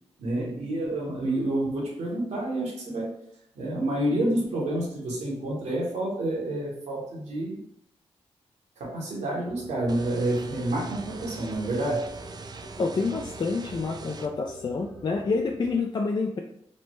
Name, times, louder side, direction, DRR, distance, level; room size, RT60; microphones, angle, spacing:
voice 1, 0.2-3.1 3.6-7.6 8.8-12.1, right 1 dB, 80° right, -3 dB, 1.0 m, -29 dB
sound 1, 9.5-15.8, right 1 dB, 10° left, 0.9 m, -46 dB
sound 2, 9.9-14.3, right 4 dB, 35° right, 0.4 m, -42 dB
voice 2, 12.8-16.4, left 4 dB, 40° left, 2 dB, 0.3 m, -28 dB
3.2 x 2.1 x 3.0 m, 0.74 s
supercardioid pair, 45°, 12 cm